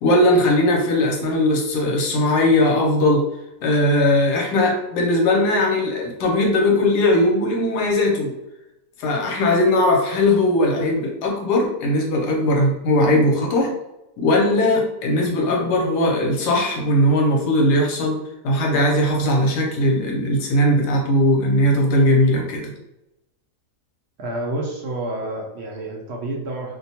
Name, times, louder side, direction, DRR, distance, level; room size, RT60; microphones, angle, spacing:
voice 1, 0.0-3.3 3.6-8.3 9.0-13.7 14.2-18.2 18.4-22.7, left 1 dB, 80° left, 0 dB, 1.3 m, -19 dB
voice 2, 24.2-26.8, right 1 dB, 85° right, -1 dB, 0.5 m, -29 dB
2.8 x 2.2 x 2.8 m, 0.91 s
omnidirectional pair, 1.8 m